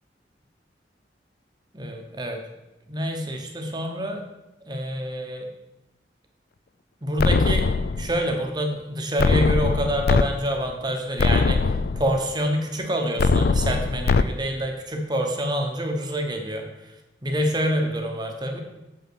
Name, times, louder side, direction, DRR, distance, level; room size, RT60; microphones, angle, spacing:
voice 1, 1.7-2.4 2.9-4.2 4.7-5.5 7.0-16.7 17.2-18.6, equal, 25° right, 3 dB, 1.1 m, -27 dB
sound 1, 7.2-8.2 9.2-10.2 10.7-10.8 11.2-12.2 13.2-14.2, left 4 dB, 55° left, 0.4 m, -21 dB
7.3 x 5.7 x 6.2 m, 0.97 s
head